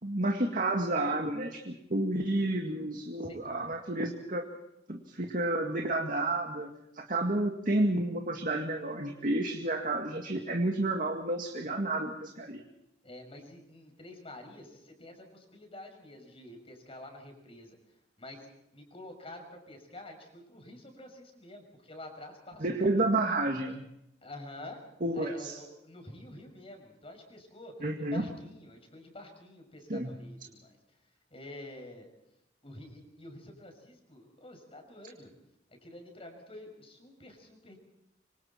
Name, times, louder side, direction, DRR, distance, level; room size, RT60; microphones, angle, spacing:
voice 1, 0.0-4.5 4.9-12.6 22.6-23.8 25.0-25.5 27.8-28.3 29.9-30.2, right 2 dB, 50° right, 2 dB, 2.0 m, -30 dB
voice 2, 3.2-3.8 13.0-17.8 18.2-18.5 18.7-23.1 24.2-24.8 25.1-30.8 31.3-32.1 32.6-35.3 35.8-37.8, left 1 dB, 35° left, 4 dB, 6.2 m, -48 dB
26.5 x 26.0 x 4.5 m, 0.85 s
head